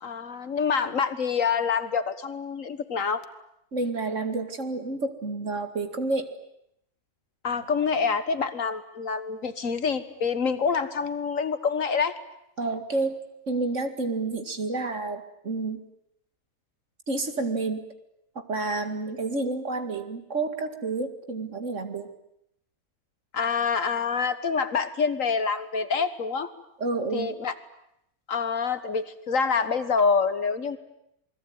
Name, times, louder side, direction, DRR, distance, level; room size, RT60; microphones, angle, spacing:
voice 1, 0.0-3.2 7.4-12.2 23.3-26.5 27.1-27.5 28.3-30.8, left 5 dB, 60° left, 12 dB, 1.8 m, -26 dB
voice 2, 3.7-6.3 12.6-13.2 13.5-15.8 17.1-17.8 18.4-22.1 26.8-27.3, right 3 dB, 55° right, 7 dB, 2.5 m, -29 dB
27.5 x 21.5 x 9.5 m, 0.78 s
omnidirectional pair, 1.6 m